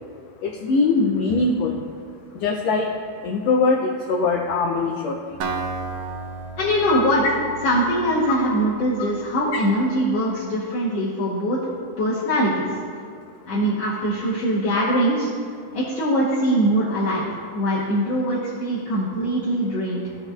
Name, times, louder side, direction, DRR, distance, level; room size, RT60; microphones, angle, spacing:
voice 1, 0.4-1.8 2.4-2.9 3.2-5.2 6.9-7.0, left 3 dB, 85° left, 2 dB, 1.4 m, -21 dB
Acoustic guitar, 5.4-9.3, right 4 dB, 90° right, 1.3 m, -33 dB
voice 2, 6.6-7.2 7.6-11.6 12.0-12.7 13.5-15.3 15.7-17.3 17.5-20.0, equal, 65° left, -7 dB, 2.0 m, -22 dB
15.5 x 5.6 x 2.3 m, 2.3 s
omnidirectional pair, 3.5 m